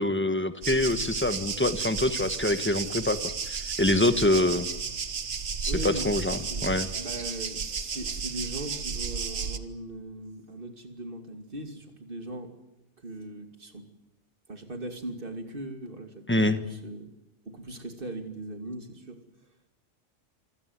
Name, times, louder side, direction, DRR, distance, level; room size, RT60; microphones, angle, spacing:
voice 1, 0.0-4.7 5.6-6.9 16.3-16.6, left 1 dB, 10° left, 10 dB, 1.2 m, -25 dB
sound 1, 0.6-9.6, right 6 dB, 65° right, 1.5 m, -33 dB
voice 2, 5.7-12.5 13.0-13.9 14.5-16.3 16.6-17.1 17.4-19.2, right 1 dB, 45° right, 6 dB, 2.8 m, -39 dB
26.5 x 16.5 x 9.5 m, 0.93 s
omnidirectional pair, 1.3 m